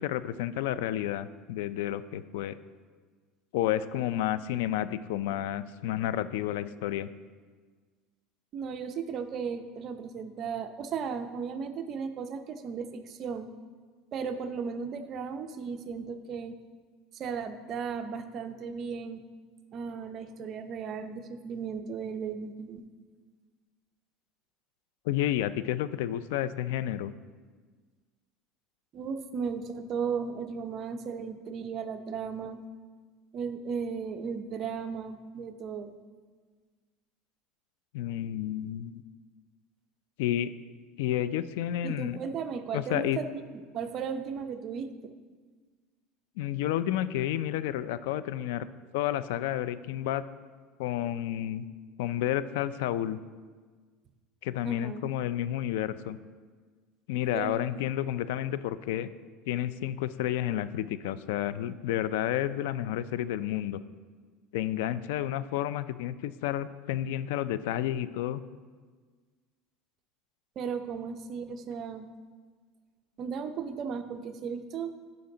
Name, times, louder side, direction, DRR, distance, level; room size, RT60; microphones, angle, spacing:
voice 1, 0.0-2.6 3.5-7.1 25.1-27.1 37.9-38.9 40.2-40.5 41.0-42.2 42.7-43.2 46.4-48.7 48.9-50.2 50.8-51.7 52.0-53.2 54.4-56.2 57.1-59.1 59.5-63.8 64.5-68.4, left 12 dB, 85° left, 15 dB, 0.3 m, -30 dB
voice 2, 8.5-13.5 14.1-16.6 17.1-19.2 19.7-22.8 28.9-32.6 33.3-35.9 41.8-43.3 43.5-45.1 54.6-55.1 57.3-57.5 70.6-72.1 73.2-74.9, right 6 dB, 40° right, 8 dB, 0.6 m, -35 dB
11.5 x 5.3 x 3.9 m, 1.5 s
supercardioid pair, 135°, 0 cm